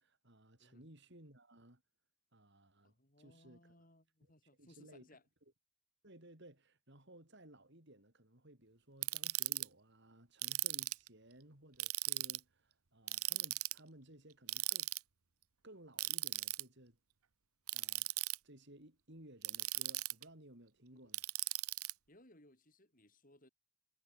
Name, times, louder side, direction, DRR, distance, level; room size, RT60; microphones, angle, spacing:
voice 1, 0.0-1.8 2.3-3.7 4.2-4.3 4.6-5.1 6.0-14.9 15.6-17.0 17.7-18.1 18.4-21.3, right 1 dB, 50° right, 4.7 m, -59 dB
voice 2, 2.8-5.2 20.9-21.1 22.1-23.5, left 1 dB, 40° left, 6.7 m, -64 dB
Ratchet pawl, 9.0-9.6 10.4-11.1 11.8-12.4 13.1-13.8 14.5-15.0 16.0-16.6 17.7-18.4 19.4-20.2 21.1-21.9, right 18 dB, 80° right, 1.0 m, -37 dB
head